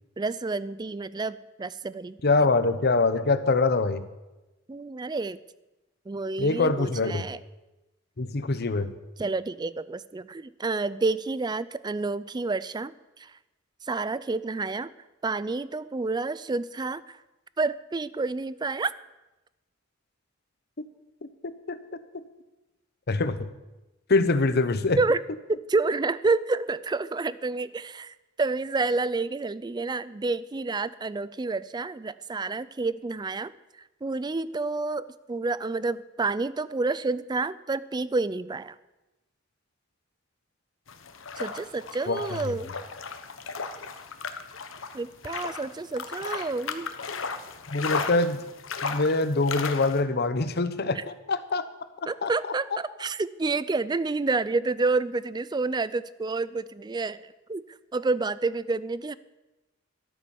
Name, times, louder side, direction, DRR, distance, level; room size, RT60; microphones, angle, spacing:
voice 1, 0.2-2.2 4.7-5.4 6.1-7.4 9.2-12.9 13.2-13.3 13.9-14.9 15.2-17.2 17.6-18.9 25.0-25.2 25.5-33.5 34.0-38.7 41.4-42.7 44.9-46.9 51.0-51.1 52.1-57.6 57.9-59.1, right 3 dB, 20° right, 18 dB, 0.4 m, -29 dB
voice 2, 2.2-4.0 6.4-7.3 8.2-8.9 20.8-20.9 21.2-21.8 23.1-23.5 24.1-25.0 42.1-42.5 47.7-48.4 48.8-51.6 52.2-52.3, left 3 dB, 55° left, 12 dB, 0.8 m, -24 dB
sound 1, 40.9-50.0, left 5 dB, 85° left, 1.1 m, -35 dB
12.5 x 8.7 x 7.1 m, 1.0 s
head